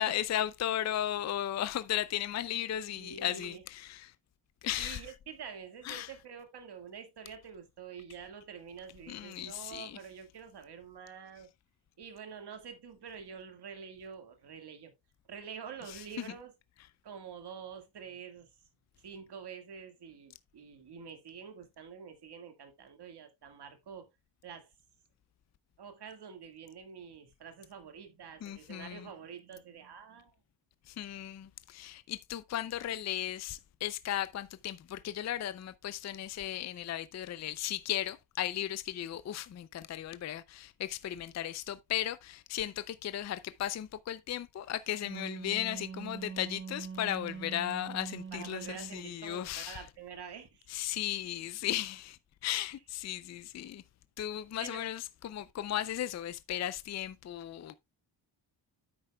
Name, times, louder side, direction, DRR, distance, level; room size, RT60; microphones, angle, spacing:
voice 1, 0.0-4.1 4.6-5.1 5.8-6.1 9.1-10.0 15.9-16.3 28.4-29.1 30.9-49.9 50.7-53.8 54.2-57.7, left 11 dB, 40° left, 0.4 m, -36 dB
voice 2, 2.9-3.6 4.8-11.5 12.0-14.9 15.3-16.5 17.0-18.5 19.0-24.1 24.4-24.7 25.8-30.3 48.3-50.7 54.6-54.9, right 6 dB, 60° right, 1.8 m, -47 dB
Wind instrument woodwind instrument, 44.8-49.0, right 6 dB, 25° right, 0.7 m, -43 dB
9.9 x 8.7 x 2.2 m
wide cardioid pair, 155°, 46 cm